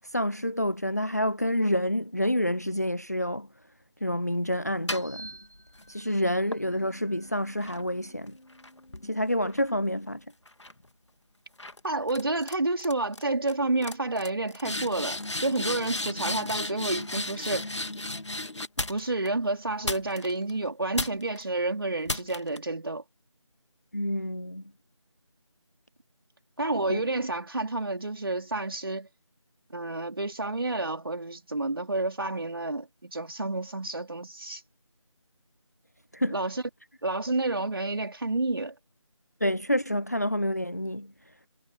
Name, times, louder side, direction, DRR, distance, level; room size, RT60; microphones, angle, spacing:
voice 1, 0.0-3.5 4.0-5.3 5.9-8.4 9.1-10.2 23.9-24.6 26.9-27.0 36.1-36.4 39.4-41.1, equal, 30° left, 0.6 m, -28 dB
sound 1, 4.7-5.9 6.5-10.1 10.5-10.9 11.6-11.8 12.1-12.5 12.8-13.2 13.5-13.6 13.8-19.3 19.8-20.5 20.9-21.4 22.1-22.6, left 2 dB, 60° left, 2.3 m, -35 dB
voice 2, 11.8-17.7 18.9-23.0 26.6-29.1 29.7-34.6 36.3-36.6 37.0-38.7, right 2 dB, 45° right, 2.8 m, -30 dB
figure-of-eight pair, 170°, 17 cm